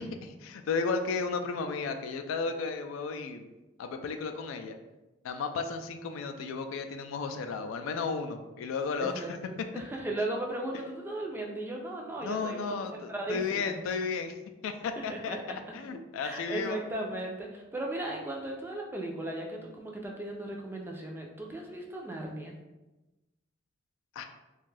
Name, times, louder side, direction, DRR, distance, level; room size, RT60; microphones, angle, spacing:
voice 1, 0.0-3.5 3.8-4.8 5.2-9.3 9.6-9.7 12.2-14.3 14.6-15.4 15.7-16.8 24.2-24.3, left 4 dB, 85° left, 6 dB, 0.3 m, -33 dB
voice 2, 9.0-12.6 13.1-13.7 15.0-15.7 16.2-22.5, right 1 dB, 10° right, 0 dB, 0.3 m, -37 dB
2.5 x 2.3 x 3.1 m, 1.1 s
head